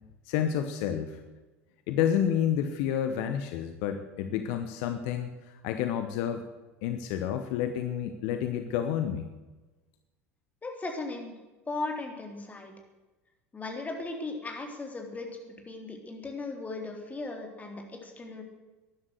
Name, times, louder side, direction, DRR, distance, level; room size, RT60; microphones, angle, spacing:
voice 1, 0.2-1.2 1.9-6.4 6.8-9.3, left 9 dB, 60° left, 9 dB, 1.0 m, -30 dB
voice 2, 10.6-11.3 11.7-12.7 13.5-18.4, left 3 dB, 20° left, 3 dB, 3.5 m, -37 dB
13.0 x 11.0 x 8.0 m, 1.2 s
figure-of-eight pair, 75°, 8 cm